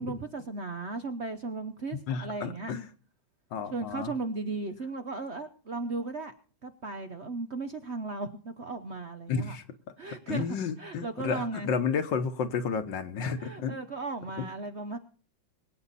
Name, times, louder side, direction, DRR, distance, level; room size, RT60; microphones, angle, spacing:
voice 1, 0.0-2.7 3.7-6.3 6.6-9.6 10.0-10.4 10.8-11.7 13.4-15.0, right 3 dB, 50° right, 7 dB, 0.9 m, -36 dB
voice 2, 2.1-2.9 3.5-4.1 9.3-9.6 10.3-13.8 14.4-14.5, left 6 dB, 70° left, 9 dB, 1.8 m, -31 dB
23.5 x 8.7 x 4.1 m, 0.41 s
omnidirectional pair, 2.1 m